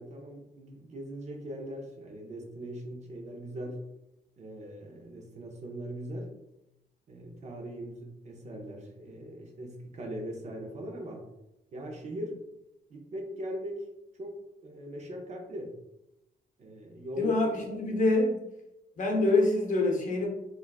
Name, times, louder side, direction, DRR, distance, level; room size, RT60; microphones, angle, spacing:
voice 1, 0.0-3.8 4.4-6.3 7.1-11.2 11.7-12.4 12.9-13.9 14.2-14.3 14.6-15.7 16.6-17.4, right 1 dB, 40° right, 1 dB, 0.5 m, -40 dB
voice 2, 17.2-18.4 19.0-20.3, left 2 dB, 45° left, 0 dB, 0.6 m, -25 dB
3.5 x 2.3 x 2.3 m, 0.88 s
wide cardioid pair, 145°, 18 cm